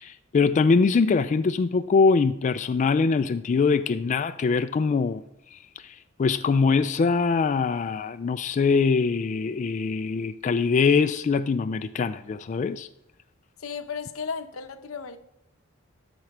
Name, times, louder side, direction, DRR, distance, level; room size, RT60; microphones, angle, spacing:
voice 1, 0.0-5.2 5.5-12.9, left 4 dB, 35° left, 0.3 m, -23 dB
voice 2, 13.6-15.2, left 5 dB, 85° left, 0.8 m, -34 dB
13.0 x 4.5 x 5.9 m
head